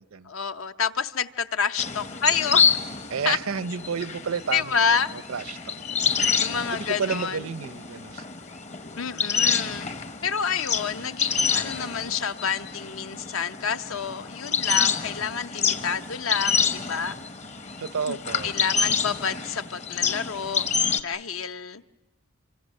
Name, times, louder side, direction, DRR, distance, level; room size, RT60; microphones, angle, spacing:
voice 1, 0.3-2.7 3.3-3.4 4.5-5.1 6.3-7.4 9.0-9.9 10.2-17.2 18.1-18.2 18.4-20.7 21.0-21.8, left 6 dB, 70° left, 0.8 m, -28 dB
sound 1, 1.8-21.0, left 6 dB, 35° left, 0.9 m, -28 dB
voice 2, 3.1-5.0 5.3-5.7 6.7-8.2 17.8-18.5, right 6 dB, 75° right, 0.7 m, -31 dB
26.0 x 25.0 x 6.5 m
head